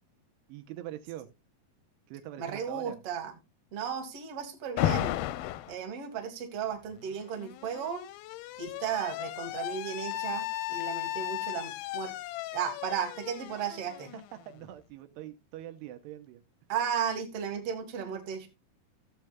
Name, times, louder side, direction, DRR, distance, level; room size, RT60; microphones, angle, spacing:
voice 1, 0.5-1.3 2.1-3.0 14.1-16.4, right 13 dB, 90° right, 3.0 m, -44 dB
voice 2, 2.4-3.3 3.7-5.2 5.7-8.0 8.6-12.1 12.5-14.1 16.7-18.5, right 7 dB, 50° right, 2.1 m, -35 dB
Alarm, 4.8-5.7 7.0-14.7, left 14 dB, 80° left, 2.2 m, -35 dB
15.0 x 7.8 x 2.3 m
omnidirectional pair, 4.7 m